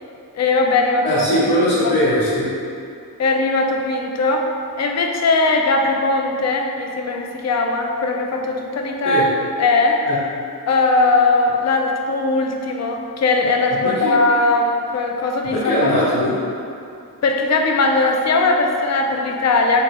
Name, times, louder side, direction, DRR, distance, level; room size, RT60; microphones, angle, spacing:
voice 1, 0.3-1.3 1.8-1.9 3.2-4.4 4.8-9.3 9.6-10.0 10.7-15.9 17.2-19.8, left 3 dB, 45° left, 2 dB, 0.5 m, -19 dB
voice 2, 1.0-2.5 9.0-9.2 10.1-10.2 13.8-14.1 15.5-16.4, equal, 75° left, -12 dB, 1.0 m, -19 dB
3.1 x 3.1 x 2.9 m, 2.6 s
cardioid pair, 50°, 39 cm